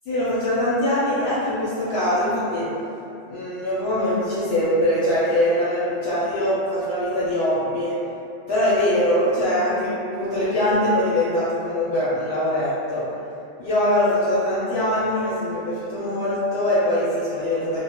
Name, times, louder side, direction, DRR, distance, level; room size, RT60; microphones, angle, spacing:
voice 1, 0.1-2.7 3.3-7.9 8.5-13.0 13.6-17.8, left 1 dB, 65° left, -10 dB, 0.7 m, -22 dB
2.2 x 2.0 x 2.8 m, 2.7 s
omnidirectional pair, 1.2 m